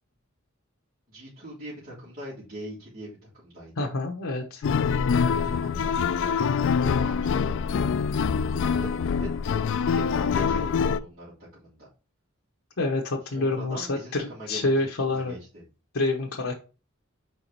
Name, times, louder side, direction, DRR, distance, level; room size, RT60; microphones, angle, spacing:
voice 1, 1.1-3.9 5.2-6.0 6.4-8.0 8.5-8.9 9.2-9.6 9.9-11.9 13.2-15.6, equal, 45° right, -10 dB, 3.3 m, -42 dB
voice 2, 3.8-4.6 12.8-15.3 15.9-16.5, left 2 dB, 85° left, 0 dB, 1.0 m, -27 dB
sound 1, 4.6-11.0, left 6 dB, 60° left, 0.4 m, -25 dB
5.1 x 4.7 x 4.2 m, 0.33 s
head